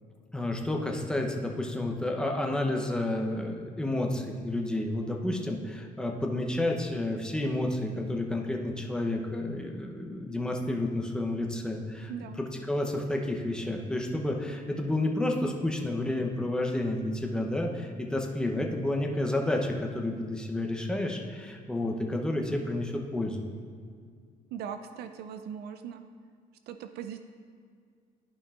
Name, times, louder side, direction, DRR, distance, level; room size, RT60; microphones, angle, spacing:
voice 1, 0.3-12.1 12.4-23.5, left 1 dB, 5° left, 1 dB, 0.7 m, -30 dB
voice 2, 12.1-12.4 24.5-26.0 26.7-27.3, right 8 dB, 75° right, 9 dB, 0.4 m, -39 dB
12.0 x 5.3 x 2.4 m, 2.1 s
cardioid pair, 110°, 17 cm